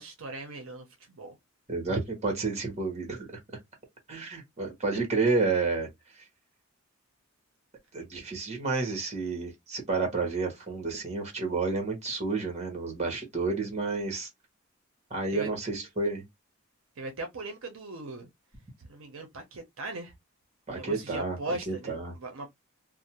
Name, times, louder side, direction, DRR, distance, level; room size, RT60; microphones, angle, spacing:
voice 1, 0.0-1.4 15.3-15.5 17.0-18.3 18.8-20.1 20.7-22.5, right 2 dB, 70° right, 0.6 m, -39 dB
voice 2, 1.7-3.3 4.1-5.9 7.9-14.3 15.1-16.2 20.7-21.4 21.7-22.1, right 3 dB, 30° right, 1.0 m, -30 dB
2.5 x 2.0 x 2.9 m
head